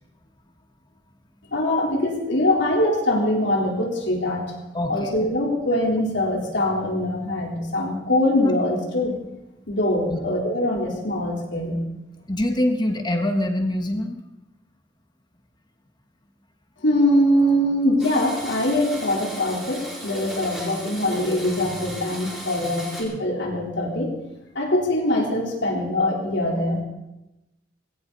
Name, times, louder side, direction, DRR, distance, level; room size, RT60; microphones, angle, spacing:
voice 1, 1.5-4.4 4.9-9.1 9.7-11.8 16.8-24.1 24.6-26.8, left 1 dB, 70° left, -1 dB, 3.9 m, -23 dB
voice 2, 4.7-5.1 10.1-10.2 12.3-14.2, left 1 dB, 25° left, 4 dB, 1.5 m, -24 dB
Domestic sounds home sounds, 18.0-23.0, equal, 5° right, 4.9 m, -36 dB
19.0 x 17.5 x 4.1 m, 0.94 s
head